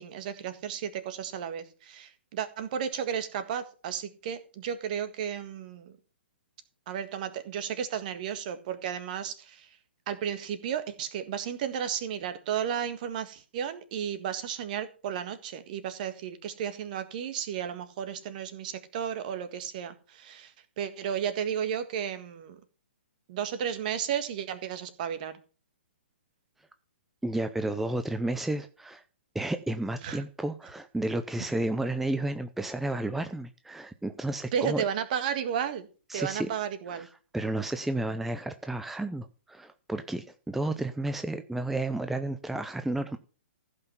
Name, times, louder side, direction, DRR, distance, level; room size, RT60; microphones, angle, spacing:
voice 1, 0.0-5.9 6.9-9.7 10.1-22.6 23.3-25.3 30.0-30.2 34.5-35.9 36.1-37.1, right 8 dB, 45° right, 11 dB, 1.7 m, -33 dB
voice 2, 27.2-29.0 29.3-34.8 36.1-36.5 36.9-37.1 37.3-43.2, right 2 dB, 5° right, 9 dB, 0.5 m, -32 dB
15.0 x 5.8 x 5.7 m, 0.37 s
figure-of-eight pair, 125°, 7 cm